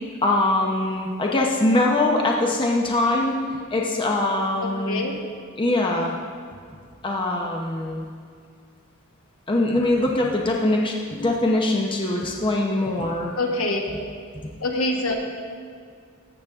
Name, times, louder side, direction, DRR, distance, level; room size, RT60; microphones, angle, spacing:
voice 1, 0.2-3.4 3.7-5.0 5.6-6.1 7.0-8.1 9.5-13.3, left 2 dB, 25° left, -1 dB, 0.8 m, -22 dB
voice 2, 4.6-5.1 13.4-13.8 14.6-15.1, left 2 dB, 70° left, 1 dB, 1.3 m, -25 dB
14.0 x 7.2 x 3.6 m, 2.2 s
head